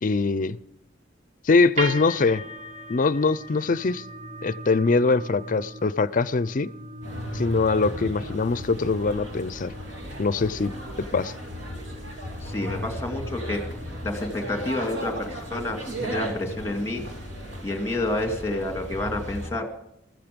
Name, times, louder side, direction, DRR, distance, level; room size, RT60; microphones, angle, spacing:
voice 1, 0.0-0.6 1.4-2.4 2.9-4.0 4.4-6.7 7.3-9.7 10.2-10.7 11.1-11.3, left 4 dB, 45° left, 18 dB, 0.5 m, -22 dB
sound 1, 1.8-18.0, equal, 40° right, 1.3 m, -41 dB
sound 2, 7.0-19.5, equal, 80° right, 3.4 m, -35 dB
voice 2, 12.4-13.6 14.0-17.0 17.6-19.6, left 2 dB, 15° left, 4 dB, 2.3 m, -29 dB
14.5 x 14.0 x 5.2 m, 0.79 s
head